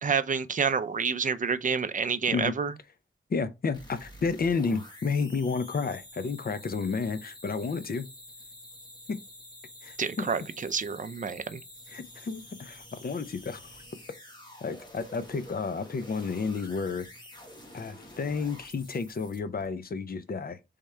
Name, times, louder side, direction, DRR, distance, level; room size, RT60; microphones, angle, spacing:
voice 1, 0.0-2.7 10.0-11.6, right 6 dB, 45° right, 0.5 m, -28 dB
voice 2, 3.3-8.1 9.1-9.2 9.8-10.3 11.9-13.8 14.6-17.1 17.7-20.6, left 4 dB, 50° left, 0.6 m, -31 dB
sound 1, 3.7-19.7, left 1 dB, 20° left, 1.3 m, -49 dB
3.6 x 3.3 x 4.3 m
wide cardioid pair, 115°, 20 cm